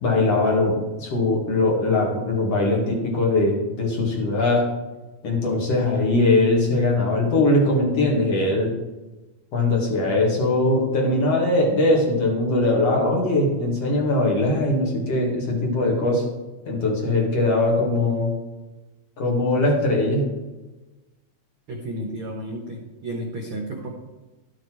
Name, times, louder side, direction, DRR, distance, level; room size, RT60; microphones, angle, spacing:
voice 1, 0.0-4.6 5.2-8.7 9.5-16.2 16.7-18.3 19.2-20.3, left 2 dB, 45° left, -2 dB, 2.8 m, -21 dB
voice 2, 21.7-23.9, right 1 dB, 75° right, 1 dB, 1.2 m, -32 dB
11.5 x 8.1 x 4.6 m, 1.1 s
omnidirectional pair, 4.3 m